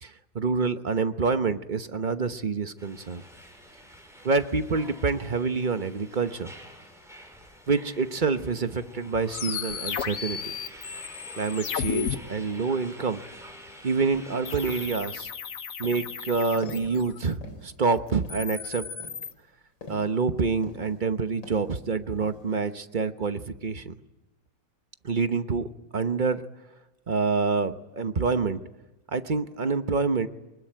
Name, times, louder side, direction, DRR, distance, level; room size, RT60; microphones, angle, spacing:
voice 1, 0.0-3.2 4.2-6.5 7.7-10.5 11.4-13.2 13.8-15.3 15.8-18.9 19.9-23.9 25.0-25.7 25.9-26.4 27.1-28.6 29.1-30.3, right 4 dB, 35° right, 9 dB, 0.8 m, -27 dB
sound 1, 2.8-14.9, equal, ahead, 6.0 m, -48 dB
sound 2, 9.3-12.2 14.5-17.3 18.1-19.3, left 7 dB, 55° left, 1.3 m, -34 dB
sound 3, 15.3-15.4 15.8-16.2 16.6-17.0 17.4-17.8 18.2-18.5 19.0-20.2 20.6-21.1 21.4-21.8 22.2-22.6, left 1 dB, 85° left, 4.4 m, -45 dB
24.5 x 21.0 x 9.1 m, 1.0 s
omnidirectional pair, 2.0 m